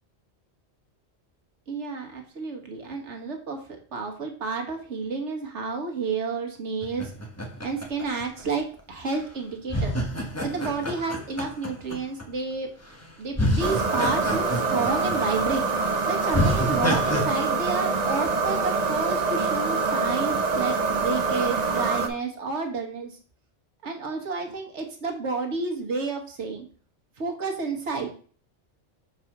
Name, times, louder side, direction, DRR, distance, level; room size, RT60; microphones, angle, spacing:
voice 1, 1.7-7.1 7.6-9.9 10.4-12.7 13.2-15.7 16.1-23.2 23.8-26.7 27.2-28.1, right 4 dB, 85° right, 3 dB, 1.6 m, -30 dB
sound 1, 6.8-8.8 9.7-12.2 12.9-13.0 13.3-15.4 15.8-15.9 16.3-17.2, equal, 15° left, 1.0 m, -28 dB
sound 2, 13.6-22.1, right 4 dB, 40° right, 0.8 m, -25 dB
4.7 x 4.1 x 5.9 m, 0.43 s
omnidirectional pair, 1.2 m